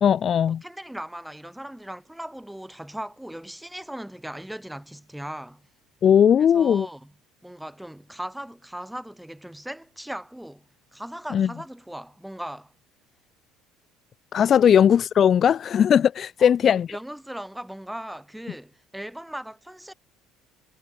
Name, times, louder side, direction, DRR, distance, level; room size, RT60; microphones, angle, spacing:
voice 1, 0.0-0.6 6.0-6.9 11.3-11.5 14.3-16.9, left 8 dB, 40° left, 0.3 m, -18 dB
voice 2, 0.6-5.7 6.4-7.1 7.4-12.7 14.6-14.8 16.4-19.9, right 1 dB, 5° right, 1.3 m, -38 dB
figure-of-eight pair, 60°, 0 cm